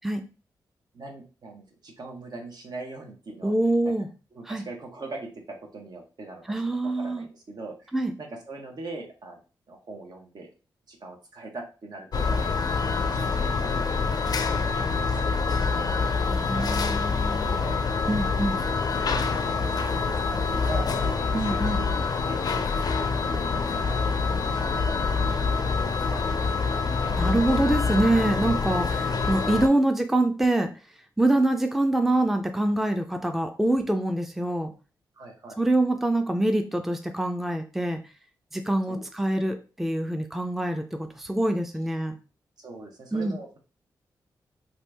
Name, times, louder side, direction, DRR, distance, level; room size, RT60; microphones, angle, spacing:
voice 1, 0.9-3.5 3.8-3.9 4.3-6.4 7.0-9.4 9.7-10.5 10.9-12.5 12.8-13.8 14.4-16.0 16.3-17.7 19.1-20.9 21.1-22.4 23.2-25.1 26.1-26.4 35.1-35.6 38.9-39.1 42.6-43.6, right 2 dB, 60° right, 1 dB, 0.9 m, -41 dB
voice 2, 3.4-4.1 4.5-4.6 6.5-7.2 7.9-8.1 16.3-17.5 18.1-18.6 21.3-21.8 27.2-30.7 31.2-34.7 35.6-38.0 38.5-42.2 43.1-43.4, right 1 dB, 5° right, 6 dB, 0.4 m, -25 dB
sound 1, 12.1-29.7, left 4 dB, 55° left, 0.4 m, -26 dB
2.8 x 2.5 x 3.4 m, 0.34 s
cardioid pair, 60°, 8 cm